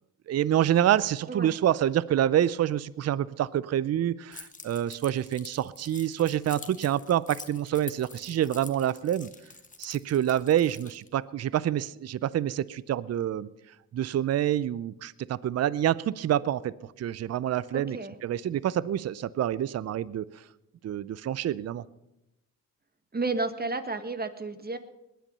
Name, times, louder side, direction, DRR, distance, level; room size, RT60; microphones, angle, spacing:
voice 1, 0.3-9.3 9.8-13.5 13.9-18.0 18.2-20.2 20.8-21.8, right 11 dB, 50° right, 20 dB, 0.5 m, -27 dB
Keys jangling, 4.3-11.1, left 4 dB, 25° left, 1.4 m, -46 dB
voice 2, 17.7-18.1 23.1-24.8, right 3 dB, 30° right, 10 dB, 1.6 m, -32 dB
20.0 x 9.3 x 5.5 m, 0.90 s
supercardioid pair, 60°, 33 cm